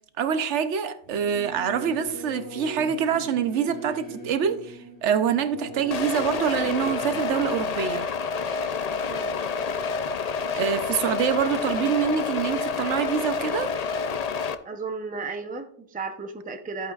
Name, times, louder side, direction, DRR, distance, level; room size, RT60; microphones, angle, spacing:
voice 1, 0.2-8.1 10.5-13.7, right 7 dB, 75° right, 1.0 m, -25 dB
Singing / Musical instrument, 1.0-7.2, right 1 dB, 65° left, 4.0 m, -40 dB
sound 1, 5.9-14.5, left 5 dB, 50° left, 0.5 m, -28 dB
voice 2, 9.1-9.4 14.6-16.9, right 4 dB, 10° right, 0.5 m, -34 dB
14.0 x 8.4 x 2.4 m
omnidirectional pair, 1.2 m